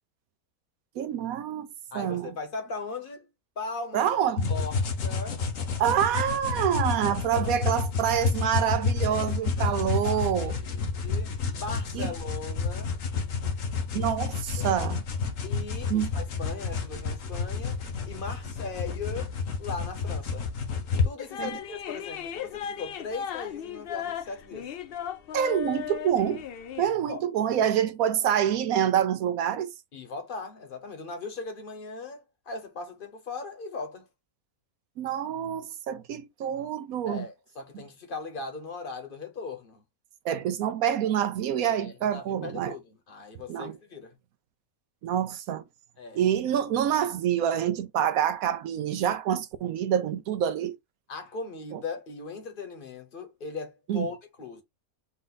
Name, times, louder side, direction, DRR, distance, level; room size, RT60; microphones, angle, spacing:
voice 1, 1.0-1.7 1.9-2.3 3.9-4.5 5.8-10.6 11.9-12.1 13.9-15.0 15.9-16.1 21.4-21.5 25.3-26.4 26.8-29.7 35.0-37.3 40.2-42.7 43.5-43.8 45.0-45.6 46.1-50.8 51.7-51.8 53.9-54.1, right 9 dB, 75° right, 1.0 m, -27 dB
voice 2, 1.9-3.3 3.6-4.1 4.5-5.4 7.3-7.7 9.1-12.9 14.6-14.8 15.4-19.3 19.6-20.5 21.0-24.7 27.1-27.2 27.6-27.7 29.9-34.1 37.0-39.8 41.7-44.1 46.0-46.2 51.1-54.6, left 4 dB, 40° left, 1.1 m, -39 dB
sound 1, 4.4-21.1, left 4 dB, 60° left, 1.3 m, -30 dB
sound 2, 21.2-26.9, left 9 dB, 85° left, 0.5 m, -36 dB
4.3 x 2.5 x 3.8 m
omnidirectional pair, 1.6 m